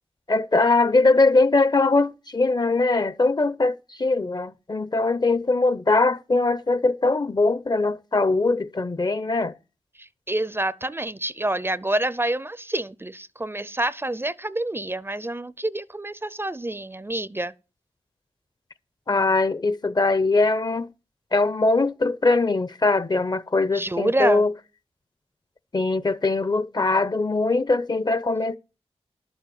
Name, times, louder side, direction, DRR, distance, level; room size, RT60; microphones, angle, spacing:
voice 1, 0.3-9.5 19.1-20.9 21.3-24.5 25.7-28.6, left 3 dB, 40° left, 0.7 m, -21 dB
voice 2, 10.0-17.5 23.7-24.5, right 1 dB, 20° right, 0.5 m, -27 dB
11.5 x 7.1 x 7.7 m
cardioid pair, 60°, 11 cm